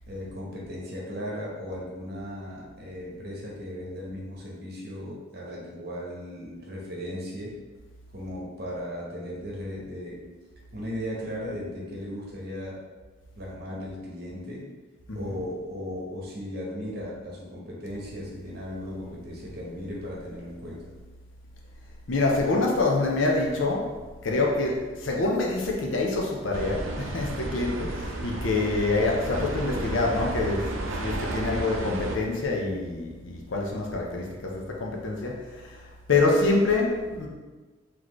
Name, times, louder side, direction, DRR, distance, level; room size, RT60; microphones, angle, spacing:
voice 1, 0.1-7.6 8.1-10.2 10.7-12.8 13.3-14.6 15.1-20.8, equal, 55° right, -4 dB, 1.1 m, -36 dB
voice 2, 22.1-23.9 24.2-35.8 36.1-37.3, left 3 dB, 75° left, -1 dB, 0.7 m, -26 dB
sound 1, 26.5-32.2, right 2 dB, 85° right, 0.6 m, -33 dB
4.1 x 3.1 x 3.1 m, 1.3 s
head